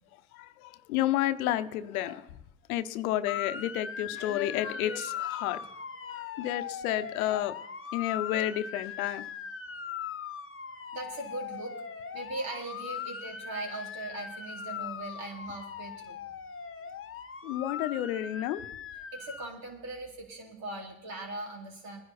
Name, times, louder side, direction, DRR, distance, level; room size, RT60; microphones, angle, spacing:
voice 1, 0.3-2.3 2.7-5.6 6.1-7.5 7.9-9.3 17.4-18.7, left 13 dB, 90° left, 12 dB, 0.8 m, -31 dB
Motor vehicle (road) / Siren, 3.3-19.5, left 7 dB, 30° left, 1.2 m, -40 dB
voice 2, 10.9-11.7 12.1-16.2 19.1-22.0, right 2 dB, 55° right, -1 dB, 4.0 m, -40 dB
20.0 x 10.5 x 4.2 m, 0.81 s
hypercardioid pair, 75°, 42 cm